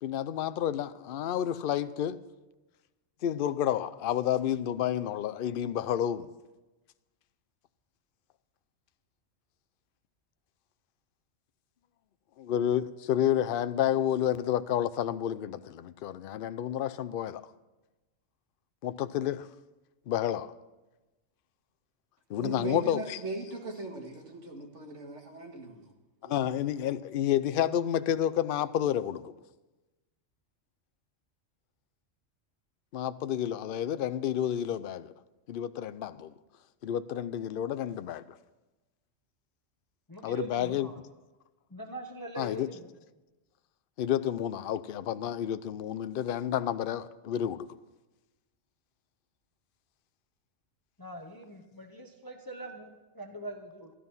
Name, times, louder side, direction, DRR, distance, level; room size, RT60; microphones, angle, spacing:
voice 1, 0.0-2.2 3.2-6.3 12.4-17.4 18.8-19.5 20.1-20.5 22.3-23.2 26.2-29.3 32.9-35.1 35.5-36.3 36.8-38.2 40.2-40.9 42.4-42.7 44.0-47.7, left 10 dB, 60° left, 0.6 m, -30 dB
voice 2, 22.4-25.9 26.2-26.5, right 3 dB, 65° right, 2.2 m, -39 dB
voice 3, 40.1-41.0 41.7-43.0 51.0-53.9, right 2 dB, 20° left, 1.0 m, -42 dB
12.5 x 12.5 x 5.5 m
omnidirectional pair, 1.3 m